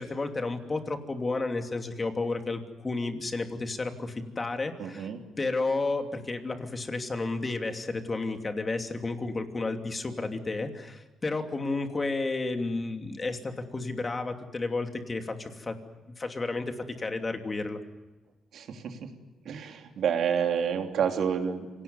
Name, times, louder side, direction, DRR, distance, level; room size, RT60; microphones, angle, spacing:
voice 1, 0.0-5.1 5.4-15.8 16.2-17.8, left 3 dB, 30° left, 5 dB, 2.9 m, -32 dB
voice 2, 4.8-5.2 18.5-19.1 19.4-21.8, right 7 dB, 70° right, 4 dB, 3.2 m, -29 dB
26.5 x 18.5 x 9.6 m, 1.2 s
cardioid pair, 95°, 0 cm